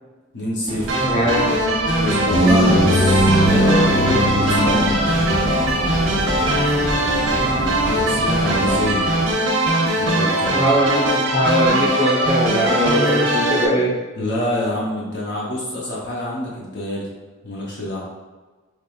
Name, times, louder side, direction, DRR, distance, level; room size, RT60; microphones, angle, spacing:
voice 1, 0.3-1.1 2.0-5.3 7.5-9.1 10.0-10.6 14.2-17.1 17.4-18.1, left 1 dB, 60° left, -5 dB, 0.7 m, -26 dB
sound 1, 0.7-8.7, right 1 dB, 25° right, 0.4 m, -31 dB
sound 2, 0.9-13.7, right 1 dB, 80° right, 0.7 m, -20 dB
voice 2, 1.0-1.5 10.5-13.9, equal, 30° left, -4 dB, 0.9 m, -20 dB
sound 3, 2.3-9.3, equal, 80° left, 1.2 m, -21 dB
4.7 x 3.1 x 2.3 m, 1.3 s
head